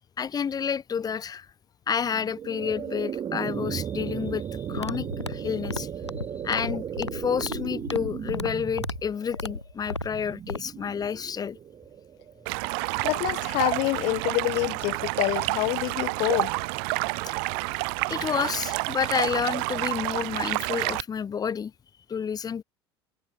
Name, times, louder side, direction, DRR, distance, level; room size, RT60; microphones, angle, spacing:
voice 1, 0.2-1.5 1.9-5.9 6.4-11.6 17.2-17.3 18.1-21.7 22.1-22.6, left 7 dB, 25° left, 2.9 m, -30 dB
sound 1, 2.0-13.2, right 9 dB, 35° right, 5.2 m, -36 dB
sound 2, 4.7-10.6, left 3 dB, 85° left, 4.3 m, -35 dB
Stream, 12.5-21.0, right 39 dB, 55° right, 6.0 m, -29 dB
voice 2, 13.0-16.7, left 25 dB, 50° left, 1.7 m, -27 dB
figure-of-eight pair, 70°, 14 cm